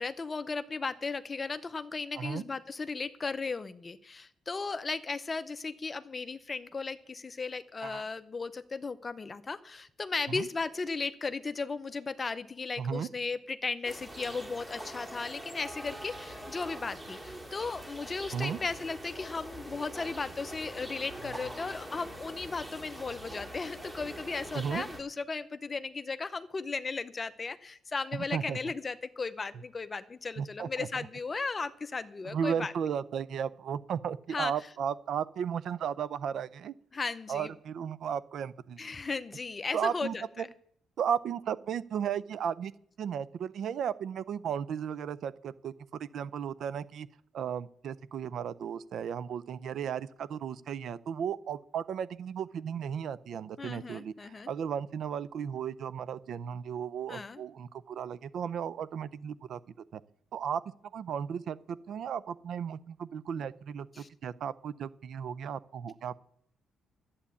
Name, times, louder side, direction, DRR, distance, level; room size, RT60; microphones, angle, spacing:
voice 1, 0.0-32.7 34.3-34.5 36.9-37.5 38.8-40.5 53.6-54.5 57.1-57.4 63.9-64.1, left 4 dB, 30° left, 13 dB, 0.7 m, -36 dB
voice 2, 12.8-13.1 18.3-18.6 24.5-24.8 28.1-28.6 30.4-31.1 32.3-36.7 37.3-38.8 39.7-40.5 41.0-42.7 43.0-47.1 47.3-59.6 59.9-60.0 60.3-60.6 60.9-66.2, right 8 dB, 65° right, 18 dB, 0.5 m, -35 dB
sound 1, 13.8-25.0, right 1 dB, 15° right, 2.4 m, -44 dB
11.5 x 8.5 x 8.3 m, 0.67 s
cardioid pair, 90°, 0 cm